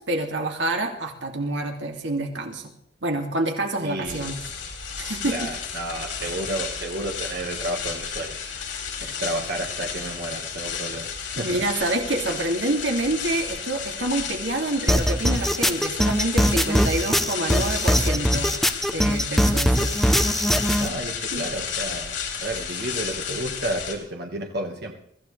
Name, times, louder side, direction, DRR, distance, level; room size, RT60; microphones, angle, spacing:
voice 1, 0.0-2.7 3.0-4.4 5.0-5.5 11.4-18.5 18.9-19.9 21.3-21.5, right 2 dB, 75° right, 2 dB, 2.6 m, -27 dB
voice 2, 3.8-4.3 5.3-11.6 17.0-17.2 20.7-25.0, right 1 dB, 60° right, 1 dB, 1.7 m, -32 dB
sound 1, 4.1-24.0, left 6 dB, 90° left, 4.0 m, -33 dB
sound 2, 14.9-20.9, equal, ahead, 0.7 m, -21 dB
23.5 x 15.5 x 3.4 m, 0.67 s
head